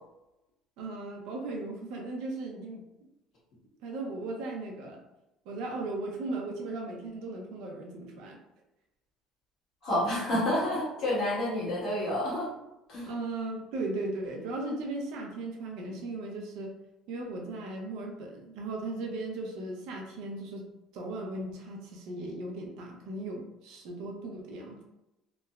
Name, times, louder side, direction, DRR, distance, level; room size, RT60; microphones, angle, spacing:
voice 1, 0.8-2.8 3.8-5.0 5.5-8.4 13.1-16.7 17.1-20.7 20.9-24.8, right 2 dB, 70° right, 1 dB, 0.5 m, -37 dB
voice 2, 9.8-12.5 12.9-13.1, left 1 dB, 45° left, -8 dB, 1.3 m, -29 dB
3.0 x 2.0 x 2.3 m, 0.93 s
cardioid pair, 175°, 0 cm